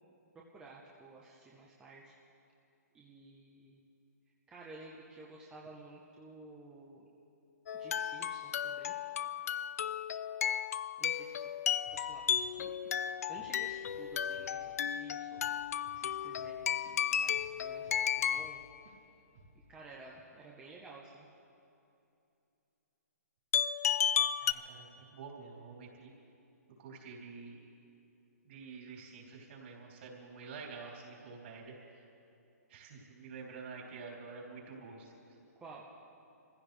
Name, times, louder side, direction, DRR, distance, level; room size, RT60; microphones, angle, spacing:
voice 1, 0.5-2.1 2.9-3.8 4.5-7.0 7.7-8.9 11.0-11.5 11.9-12.7 13.3-15.5 15.9-18.6 19.7-21.3 35.6-35.9, right 3 dB, 10° right, -4 dB, 0.9 m, -53 dB
sound 1, 7.7-18.6 23.5-24.5, left 8 dB, 60° left, 0.4 m, -34 dB
Drum kit / Drum, 11.9-12.1 12.4-13.1 13.4-13.6 13.9-17.0 17.4-18.6 18.9-19.0 19.4-19.7, right 2 dB, 65° right, 3.4 m, -60 dB
voice 2, 24.4-26.1 26.8-27.6 28.4-31.7 32.7-35.3, right 4 dB, 45° right, -2 dB, 3.5 m, -48 dB
25.0 x 15.5 x 3.4 m, 2.7 s
hypercardioid pair, 160°, 9 cm